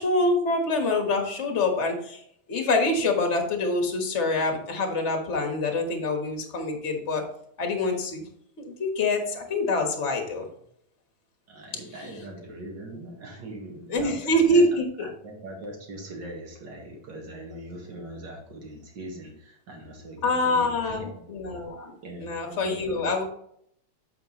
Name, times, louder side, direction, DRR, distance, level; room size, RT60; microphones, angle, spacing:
voice 1, 0.0-2.2 2.5-7.2 7.6-8.2 8.6-10.5 13.9-14.8 20.2-21.9 22.2-23.2, left 2 dB, 35° left, 3 dB, 1.5 m, -25 dB
voice 2, 11.5-14.2 14.5-14.6 15.0-21.3 22.0-23.1, right 1 dB, 55° right, 0 dB, 2.5 m, -41 dB
8.1 x 5.8 x 3.1 m, 0.70 s
omnidirectional pair, 2.3 m